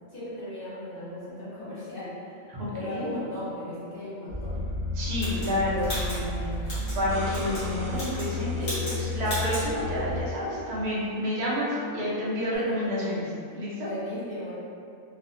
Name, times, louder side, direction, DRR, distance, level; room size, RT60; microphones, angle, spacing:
voice 1, 0.1-2.4 2.7-4.5 7.1-7.4 12.9-13.0 13.5-14.5, left 1 dB, 50° left, -11 dB, 0.9 m, -37 dB
voice 2, 2.5-3.2 4.9-13.9, equal, 45° right, -7 dB, 0.6 m, -30 dB
sound 1, 4.3-10.2, left 3 dB, 20° left, 0.9 m, -32 dB
sound 2, 5.2-7.0 7.3-7.7 7.9-8.3 8.6-9.0 9.2-9.7, left 1 dB, 90° left, 1.7 m, -36 dB
sound 3, 6.9-9.7 12.5-12.6, right 1 dB, 65° right, 1.0 m, -43 dB
3.3 x 2.1 x 2.4 m, 2.5 s
omnidirectional pair, 1.4 m